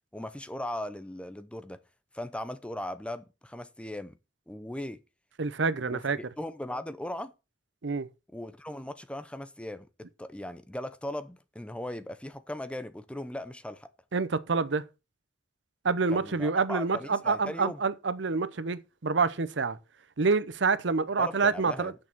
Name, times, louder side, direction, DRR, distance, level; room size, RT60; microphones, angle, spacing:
voice 1, 0.1-1.8 2.1-4.2 4.5-5.0 5.9-6.0 6.4-7.3 8.3-9.9 10.2-13.9 16.1-17.8 21.2-21.9, left 1 dB, 5° left, 0.6 m, -38 dB
voice 2, 5.4-6.2 7.8-8.1 14.1-14.8 15.8-19.8 20.2-21.9, right 4 dB, 75° right, 0.7 m, -27 dB
8.4 x 6.6 x 6.0 m
head